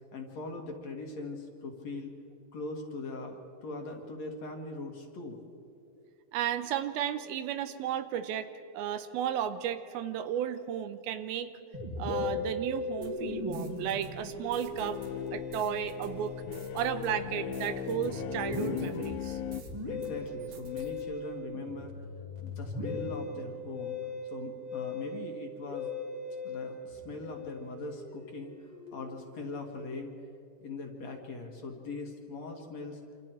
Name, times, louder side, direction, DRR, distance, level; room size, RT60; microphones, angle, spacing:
voice 1, 0.1-2.1 2.5-5.4 19.8-22.0 22.4-24.0 24.2-25.9 26.4-28.5 28.9-30.1 30.6-33.0, left 3 dB, 50° left, 2 dB, 2.5 m, -41 dB
voice 2, 6.3-11.5 12.0-15.0 15.3-16.4 16.7-19.4, right 9 dB, 85° right, 11 dB, 2.6 m, -34 dB
Musical instrument, 11.7-29.3, left 2 dB, 15° right, 1.7 m, -39 dB
sound 1, 13.0-19.7 20.0-21.0, right 2 dB, 55° right, 3.4 m, -52 dB
sound 2, 14.3-19.6, left 11 dB, 75° left, 2.4 m, -38 dB
27.0 x 26.5 x 4.5 m, 2.7 s
omnidirectional pair, 4.5 m